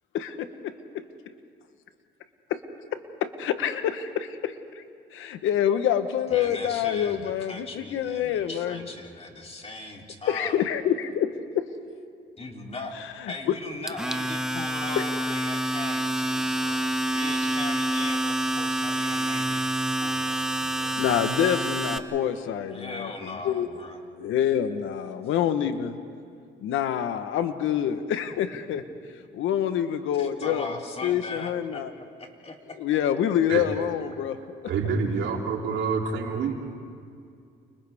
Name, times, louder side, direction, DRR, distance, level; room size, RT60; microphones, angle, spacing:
voice 1, 0.1-1.0 3.2-4.8 5.1-8.8 10.3-11.7 13.5-13.6 14.6-14.7 15.0-15.1 21.0-23.7 24.2-26.0 26.6-28.8 29.3-30.7 31.0-31.9 32.8-34.4, left 9 dB, 85° left, 9 dB, 1.2 m, -26 dB
voice 2, 6.3-10.6 12.4-19.6 20.0-21.2 22.7-24.0 30.2-32.6, left 2 dB, 30° left, 1 dB, 3.3 m, -39 dB
Domestic sounds home sounds, 13.9-22.0, right 1 dB, 5° right, 1.0 m, -27 dB
voice 3, 34.6-36.5, right 5 dB, 75° right, 0 dB, 3.2 m, -27 dB
30.0 x 29.0 x 3.6 m, 2.4 s
cardioid pair, 90°, 20 cm